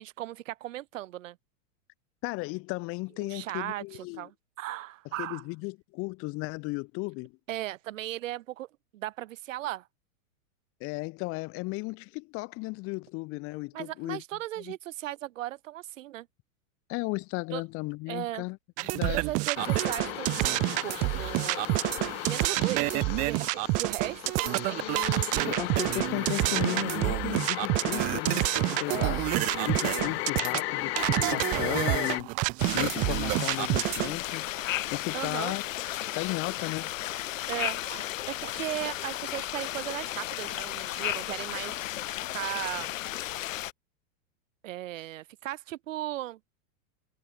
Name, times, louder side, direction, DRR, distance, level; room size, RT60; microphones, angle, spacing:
voice 1, 0.0-1.4 3.2-5.4 7.5-8.7 8.9-9.9 13.7-16.3 17.5-17.6 18.1-18.5 19.1-21.7 22.2-24.8 28.9-29.2 35.1-35.5 37.5-41.8 42.3-42.9 44.6-46.4, right 15 dB, 65° right, 5.0 m, -37 dB
voice 2, 2.2-4.3 5.2-7.3 10.8-14.2 14.6-14.7 16.9-18.6 18.8-19.2 25.5-29.3 29.7-32.3 32.7-34.5 34.9-35.6 36.1-36.9, left 25 dB, 30° left, 3.0 m, -35 dB
sound 1, 18.8-34.2, right 27 dB, 20° right, 0.6 m, -28 dB
sound 2, 19.6-32.2, left 20 dB, 50° left, 2.4 m, -35 dB
sound 3, 32.6-43.7, left 14 dB, 65° left, 5.0 m, -34 dB
supercardioid pair, 170°, 42 cm